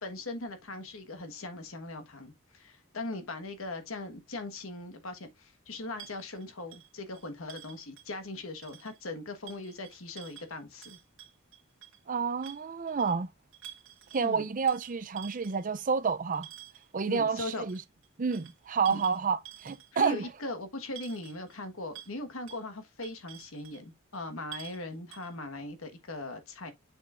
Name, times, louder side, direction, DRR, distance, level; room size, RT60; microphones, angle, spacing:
voice 1, 0.0-11.0 14.1-14.5 17.1-17.6 18.9-19.0 19.9-26.7, left 2 dB, 75° left, 1.4 m, -40 dB
sound 1, 6.0-8.3 8.6-9.0 9.5-12.0 12.4-13.2 13.5-14.3 14.7-16.9 17.7-20.1 20.4-20.5 21.0-21.6 21.9-22.2 22.5-22.6 23.0-23.8 24.1-24.2 24.5-24.8 25.1-25.3, right 12 dB, 70° right, 1.7 m, -49 dB
voice 2, 12.1-13.3 14.1-16.5 16.9-17.8 18.2-20.3, right 5 dB, 40° right, 0.5 m, -29 dB
7.0 x 6.6 x 2.5 m
head